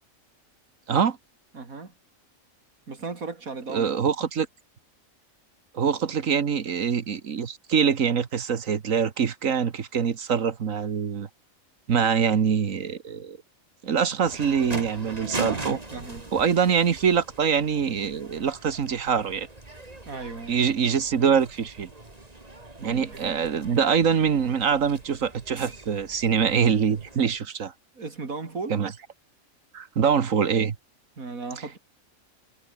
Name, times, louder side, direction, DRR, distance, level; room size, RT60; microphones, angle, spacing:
voice 1, 1.5-1.9 2.9-4.1 15.5-16.3 20.1-20.6 22.8-23.4 27.9-28.8 31.2-31.8, right 4 dB, 90° right, 3.4 m, -36 dB
voice 2, 3.7-4.5 5.7-11.3 11.9-13.4 13.8-15.8 16.3-19.5 20.5-21.9 22.8-27.7 28.7-28.9 29.7-30.8, right 7 dB, 70° right, 1.7 m, -24 dB
sound 1, 14.2-27.4, right 2 dB, 25° right, 3.0 m, -40 dB
omnidirectional pair, 1.4 m